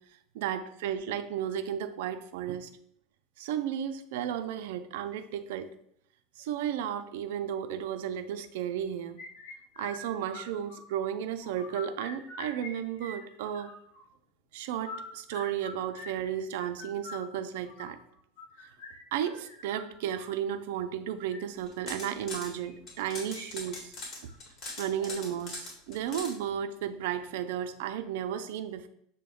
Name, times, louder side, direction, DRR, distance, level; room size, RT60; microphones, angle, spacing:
voice 1, 0.3-2.7 3.4-5.7 6.4-9.2 9.8-13.7 14.5-18.0 18.6-18.7 19.1-23.9 24.8-28.9, right 9 dB, 75° right, 8 dB, 0.4 m, -34 dB
sound 1, 9.2-11.1 11.4-12.7 13.0-14.0 14.7-20.3 21.1-21.4 22.6-23.5 23.7-23.8 24.3-24.4 25.0-25.3, left 3 dB, 70° left, 1.7 m, -45 dB
sound 2, 21.6-22.5 22.9-26.3, left 2 dB, 40° left, 1.7 m, -41 dB
6.7 x 2.2 x 3.5 m, 0.70 s
supercardioid pair, 130°, 0 cm